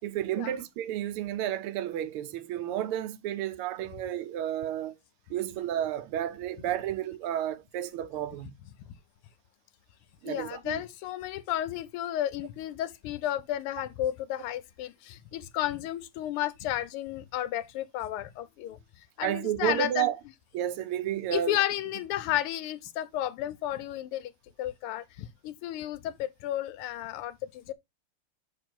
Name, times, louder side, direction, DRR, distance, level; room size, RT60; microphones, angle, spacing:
voice 1, 0.0-4.9 5.3-8.5 10.2-10.8 19.2-20.2 20.5-21.6, right 11 dB, 85° right, 1.6 m, -31 dB
voice 2, 10.2-18.8 19.2-20.1 21.3-24.3 24.6-27.7, left 13 dB, 90° left, 1.6 m, -32 dB
6.4 x 4.0 x 4.3 m
omnidirectional pair, 2.4 m